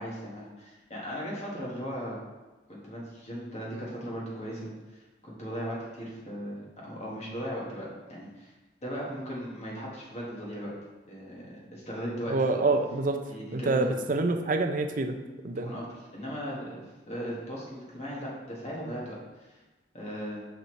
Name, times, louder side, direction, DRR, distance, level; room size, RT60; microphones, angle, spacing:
voice 1, 0.0-2.2 2.7-8.5 8.8-10.7 11.1-12.3 13.3-14.0 15.5-15.9 16.1-16.8 17.1-19.6 19.9-20.4, equal, 40° left, -5 dB, 1.6 m, -37 dB
voice 2, 12.3-13.2 13.5-15.2 15.4-15.7, right 3 dB, 50° right, 6 dB, 0.5 m, -26 dB
6.2 x 5.2 x 3.2 m, 1.2 s
head